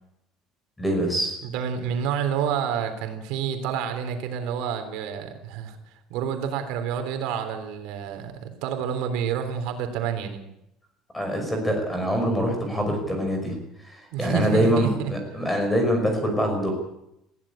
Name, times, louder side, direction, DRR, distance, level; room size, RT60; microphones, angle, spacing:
voice 1, 0.8-1.4 11.1-16.7, equal, 5° left, 4 dB, 5.4 m, -24 dB
voice 2, 1.4-5.8 6.1-10.4 14.1-15.1, right 8 dB, 75° right, 7 dB, 3.4 m, -29 dB
20.5 x 15.5 x 8.9 m, 0.82 s
cardioid pair, 175°, 0 cm